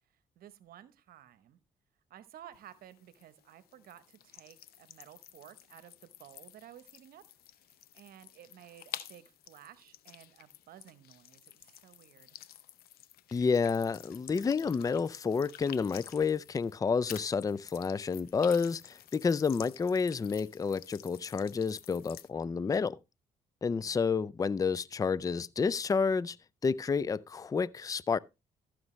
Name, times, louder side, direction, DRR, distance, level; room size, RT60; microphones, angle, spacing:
voice 1, 0.4-1.6 2.1-7.2 7.7-12.4 23.7-24.2, right 11 dB, 70° right, 0.9 m, -54 dB
sound 1, 2.5-16.8 17.0-22.3, left 12 dB, 75° left, 0.7 m, -51 dB
voice 2, 13.3-23.0 23.6-26.4 26.6-28.2, left 5 dB, 20° left, 0.4 m, -30 dB
14.5 x 6.4 x 3.1 m
supercardioid pair, 60°, 16 cm